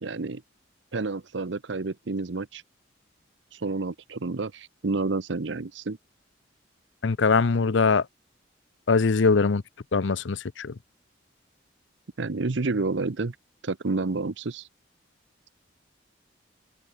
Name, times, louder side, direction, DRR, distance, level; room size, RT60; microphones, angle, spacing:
voice 1, 0.0-0.4 0.9-2.6 3.5-6.0 12.2-13.4 13.6-14.7, right 3 dB, 75° right, 0.8 m, -29 dB
voice 2, 7.0-8.1 8.9-9.6 9.9-10.7, left 4 dB, 80° left, 0.6 m, -22 dB
open air
head